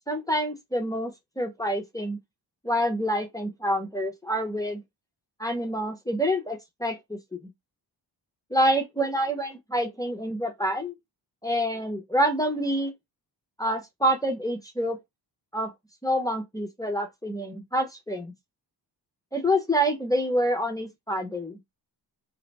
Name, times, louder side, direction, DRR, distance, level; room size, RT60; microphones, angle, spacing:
voice 1, 0.1-2.2 2.6-4.8 5.4-7.4 8.5-11.0 11.4-12.9 13.6-15.0 15.5-15.7 16.0-18.3 19.3-21.6, equal, 10° left, 0.4 m, -27 dB
2.5 x 2.1 x 4.0 m
wide cardioid pair, 140°, 44 cm